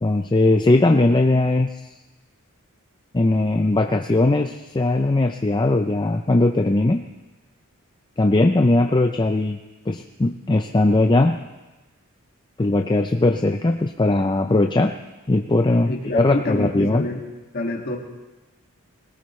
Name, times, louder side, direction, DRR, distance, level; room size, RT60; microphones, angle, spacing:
voice 1, 0.0-1.8 3.1-7.1 8.2-9.6 9.9-11.4 12.6-14.9 15.3-17.1, left 2 dB, 20° left, 5 dB, 0.5 m, -19 dB
voice 2, 15.9-17.2 17.5-18.0, left 2 dB, 45° left, 0 dB, 2.2 m, -27 dB
21.0 x 18.5 x 3.2 m, 1.1 s
head